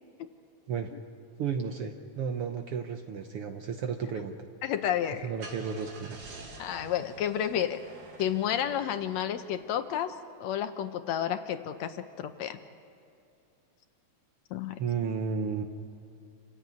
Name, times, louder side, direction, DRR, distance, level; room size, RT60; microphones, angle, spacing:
voice 1, 1.4-4.3 5.2-6.2 14.8-15.6, right 6 dB, 65° right, 6 dB, 1.5 m, -33 dB
voice 2, 4.6-5.3 6.6-7.8 8.2-12.6 14.5-14.8, left 10 dB, 70° left, 9 dB, 1.9 m, -31 dB
Car / Engine starting, 5.1-9.7, right 2 dB, 85° right, 4.1 m, -49 dB
27.5 x 15.0 x 9.3 m, 2.7 s
omnidirectional pair, 3.5 m